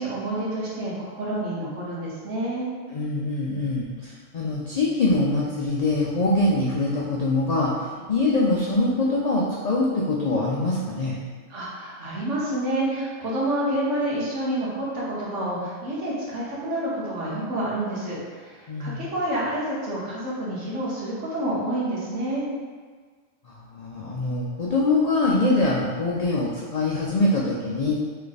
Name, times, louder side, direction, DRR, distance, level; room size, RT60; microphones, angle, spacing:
voice 1, 0.0-2.7 11.5-22.5, right 1 dB, 70° right, -6 dB, 1.4 m, -28 dB
voice 2, 2.9-11.2 18.7-19.0 23.4-27.9, left 2 dB, 80° left, -4 dB, 0.3 m, -24 dB
3.4 x 3.2 x 3.9 m, 1.5 s
omnidirectional pair, 1.3 m